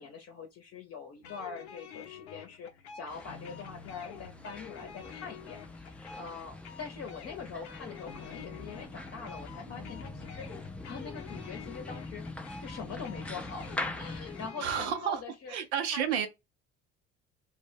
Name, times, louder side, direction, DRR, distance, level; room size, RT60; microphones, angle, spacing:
voice 1, 0.0-10.5 10.8-12.3 12.6-15.5 15.9-16.3, left 5 dB, 45° left, 0.7 m, -43 dB
sound 1, 1.2-15.1, left 7 dB, 80° left, 0.6 m, -48 dB
sound 2, 3.1-14.5, left 2 dB, 5° left, 0.4 m, -43 dB
voice 2, 14.6-15.2 15.5-16.3, right 8 dB, 80° right, 0.6 m, -30 dB
2.2 x 2.0 x 3.2 m
hypercardioid pair, 60°, 32 cm